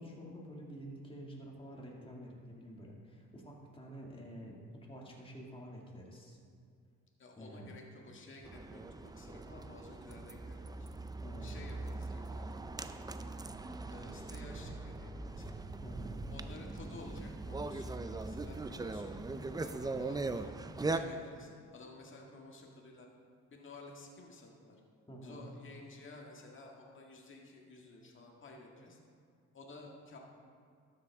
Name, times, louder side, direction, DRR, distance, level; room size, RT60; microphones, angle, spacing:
voice 1, 0.0-6.4 7.4-7.7 11.2-11.9 15.8-16.2 25.1-25.5, equal, 20° left, -2 dB, 2.1 m, -49 dB
voice 2, 7.2-10.9 11.4-12.5 12.9-13.2 13.9-15.7 16.3-20.5 20.9-23.1 23.5-24.8 25.2-29.0 29.5-30.2, left 2 dB, 40° left, 0 dB, 1.8 m, -53 dB
sound 1, 8.4-21.0, right 3 dB, 15° right, 0.4 m, -40 dB
13.0 x 7.8 x 3.5 m, 2.3 s
cardioid pair, 90°, 30 cm